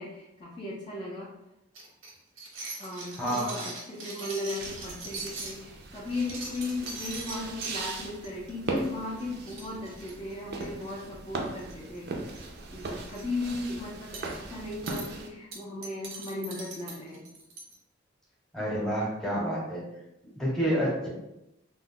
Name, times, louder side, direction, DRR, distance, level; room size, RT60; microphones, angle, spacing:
voice 1, 0.0-1.3 2.8-12.3 12.7-17.3, left 2 dB, 25° left, -6 dB, 0.4 m, -36 dB
sound 1, 1.7-5.6 6.1-7.7 8.2-8.5 8.8-8.9 9.2-9.3 9.5-10.8 11.6-12.0 12.2-12.4 12.8-13.2 14.1-14.3 14.9-15.1 15.5-17.7, right 3 dB, 85° right, 0.7 m, -40 dB
voice 2, 3.2-3.5 18.5-19.9 20.4-21.1, equal, 5° left, -5 dB, 0.8 m, -28 dB
sound 2, 4.6-15.3, right 3 dB, 55° right, 0.4 m, -39 dB
2.2 x 2.0 x 3.6 m, 0.90 s
head